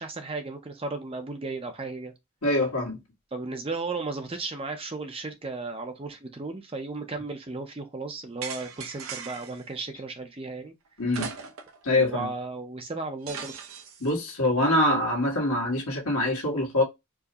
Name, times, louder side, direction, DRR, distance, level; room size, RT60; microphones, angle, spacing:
voice 1, 0.0-2.1 3.3-10.7 12.0-13.5, right 3 dB, 25° right, 0.6 m, -35 dB
voice 2, 2.4-3.0 11.0-11.3 11.8-12.3 14.0-16.8, left 1 dB, 75° left, 1.6 m, -24 dB
sound 1, 8.4-9.6 11.1-11.8 12.2-12.3 13.3-14.1, right 5 dB, 65° right, 0.7 m, -38 dB
4.6 x 2.1 x 2.8 m
head